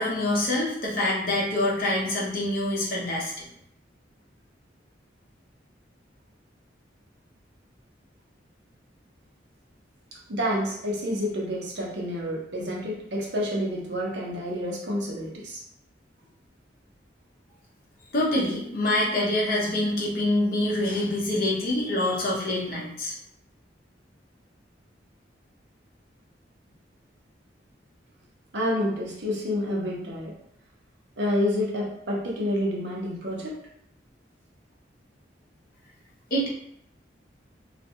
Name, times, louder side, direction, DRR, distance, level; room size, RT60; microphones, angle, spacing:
voice 1, 0.0-3.4 18.1-23.1 36.3-36.5, left 1 dB, 50° left, -5 dB, 0.7 m, -25 dB
voice 2, 10.1-15.6 28.5-30.3 31.2-33.5, left 1 dB, 70° right, -3 dB, 0.7 m, -29 dB
2.4 x 2.2 x 2.8 m, 0.72 s
head